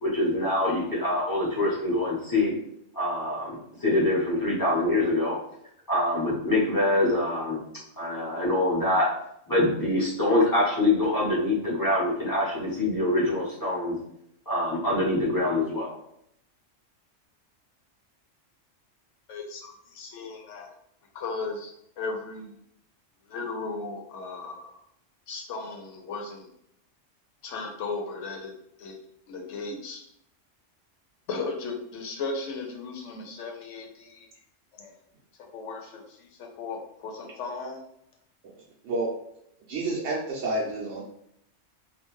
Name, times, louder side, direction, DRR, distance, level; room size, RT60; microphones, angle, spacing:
voice 1, 0.0-2.5 2.9-5.4 5.9-7.6 8.0-9.2 9.5-14.0 14.5-15.9, left 1 dB, 20° left, -6 dB, 0.7 m, -25 dB
voice 2, 19.3-20.7 21.1-21.7 22.0-22.6 23.3-24.7 25.3-26.5 27.4-28.5 28.8-29.0 29.3-30.0 31.3-34.3 34.7-35.0 35.5-37.8, left 3 dB, 80° left, 2 dB, 0.9 m, -36 dB
voice 3, 39.7-41.0, right 2 dB, 70° right, -4 dB, 0.8 m, -29 dB
2.4 x 2.1 x 3.0 m, 0.74 s
omnidirectional pair, 1.3 m